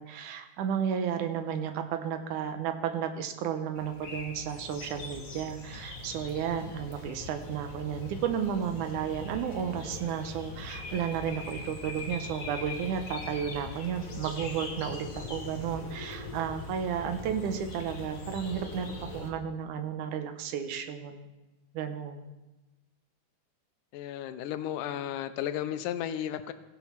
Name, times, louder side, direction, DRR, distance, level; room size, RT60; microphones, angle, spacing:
voice 1, 0.0-18.9 19.1-21.3 21.7-22.3, right 8 dB, 80° right, 7 dB, 2.3 m, -33 dB
sound 1, 3.7-19.3, left 3 dB, 50° left, 0.9 m, -41 dB
voice 2, 23.9-26.5, left 11 dB, 90° left, 11 dB, 2.2 m, -34 dB
16.5 x 5.9 x 5.7 m, 1.1 s
omnidirectional pair, 3.6 m